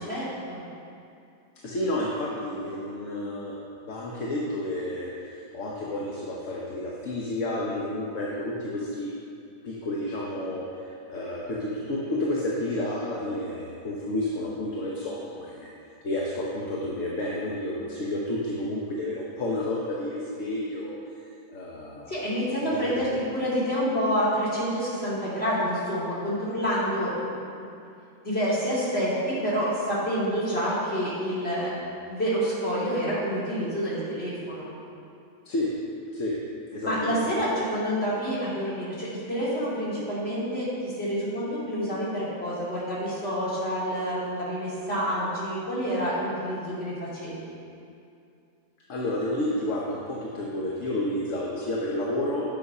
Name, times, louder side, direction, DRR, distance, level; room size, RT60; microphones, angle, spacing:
voice 1, 0.1-0.7 22.1-27.1 28.2-31.8 32.1-34.7 36.8-47.3, equal, 35° left, -9 dB, 3.1 m, -28 dB
voice 2, 1.6-3.6 3.8-9.1 9.6-15.7 16.0-22.1 22.6-23.1 35.4-35.7 36.1-36.4 36.7-37.3 48.9-52.4, left 1 dB, 50° left, -4 dB, 1.2 m, -31 dB
9.8 x 6.6 x 5.5 m, 2.5 s
omnidirectional pair, 1.9 m